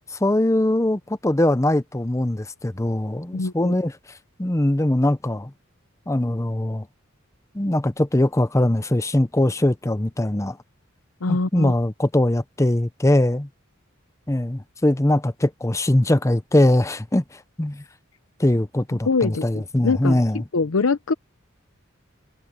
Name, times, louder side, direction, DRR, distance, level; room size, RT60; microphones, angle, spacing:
voice 1, 0.0-3.9 4.4-5.5 6.1-6.9 7.5-10.6 11.3-13.5 14.3-17.8 18.4-20.4, left 1 dB, 15° left, 0.7 m, -21 dB
voice 2, 3.3-3.8 11.2-11.7 19.1-19.4 19.8-20.2 20.5-21.1, left 4 dB, 80° left, 0.7 m, -23 dB
head